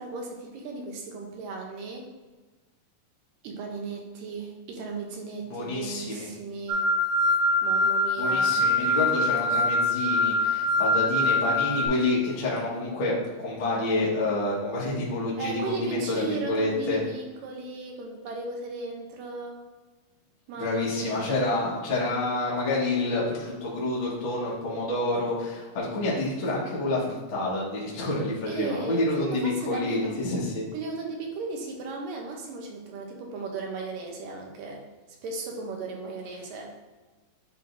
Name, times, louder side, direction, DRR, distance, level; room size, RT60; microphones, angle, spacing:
voice 1, 0.0-2.0 3.4-6.9 7.6-8.6 15.4-19.6 20.5-21.3 28.5-30.2 30.7-34.8 35.2-36.7, right 3 dB, 75° right, 1 dB, 2.4 m, -36 dB
voice 2, 5.5-6.3 8.2-13.1 13.4-17.0 20.6-30.6, left 2 dB, 50° left, -6 dB, 1.7 m, -28 dB
sound 1, 6.7-11.9, left 1 dB, 60° right, 2.4 m, -24 dB
10.0 x 3.7 x 2.6 m, 1.3 s
omnidirectional pair, 4.2 m